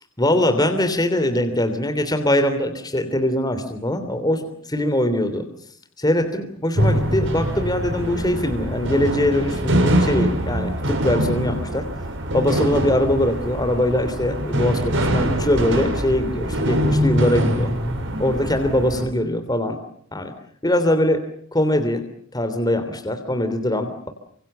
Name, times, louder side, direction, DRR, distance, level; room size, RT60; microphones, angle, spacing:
voice 1, 0.2-4.4 4.7-5.4 6.0-11.8 12.3-17.7 18.2-19.8 20.1-20.3 20.6-21.2 21.5-22.0 22.3-24.1, left 1 dB, 20° left, 7 dB, 3.2 m, -22 dB
sound 1, 6.7-19.0, equal, 65° right, 6.8 m, -23 dB
28.0 x 26.0 x 6.9 m, 0.64 s
head